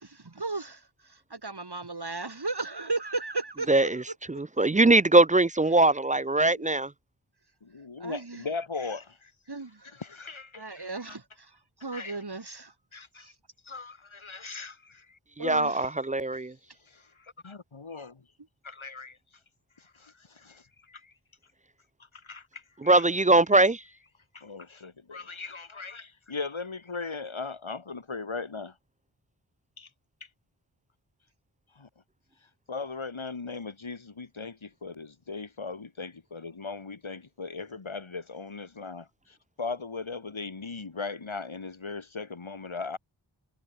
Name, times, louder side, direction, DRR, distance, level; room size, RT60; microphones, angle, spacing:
voice 1, 0.1-0.8 1.3-3.8 6.4-6.7 8.0-8.4 9.5-9.7 10.5-11.2 11.8-12.7 15.4-15.9, right 3 dB, 55° right, 3.9 m, -35 dB
voice 2, 3.7-6.9 15.4-16.5 22.8-23.8, right 2 dB, 20° right, 0.3 m, -22 dB
voice 3, 7.6-9.3 10.0-11.2 11.9-12.2 12.9-13.3 13.7-15.2 16.9-18.2 18.6-19.2 19.8-20.6 20.9-21.0 22.2-23.0 24.3-28.7 29.8-29.9 31.8-31.9 32.7-39.1 39.6-43.0, left 4 dB, 80° left, 3.9 m, -38 dB
wide cardioid pair, 60°, 47 cm